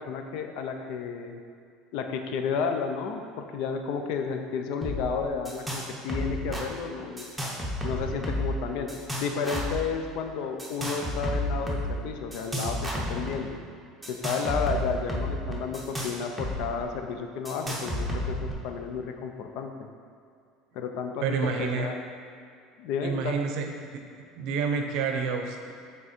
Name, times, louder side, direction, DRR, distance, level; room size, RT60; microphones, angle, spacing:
voice 1, 0.0-1.4 1.9-3.2 3.5-7.2 7.8-8.9 9.2-13.6 14.1-19.9 20.7-22.0 22.8-23.4, left 6 dB, 60° left, 5 dB, 0.5 m, -32 dB
sound 1, 4.8-5.0 5.2-5.8 6.1-6.6 7.2-8.6 8.9-9.8 10.6-11.9 12.3-13.4 14.0-16.6 16.8-16.9 17.5-18.5, equal, ahead, 0.8 m, -31 dB
voice 2, 21.2-21.9 23.0-23.7 23.9-24.0 24.4-25.7, right 5 dB, 55° right, 4 dB, 0.6 m, -28 dB
6.2 x 3.6 x 4.3 m, 2.4 s
cardioid pair, 160°, 0 cm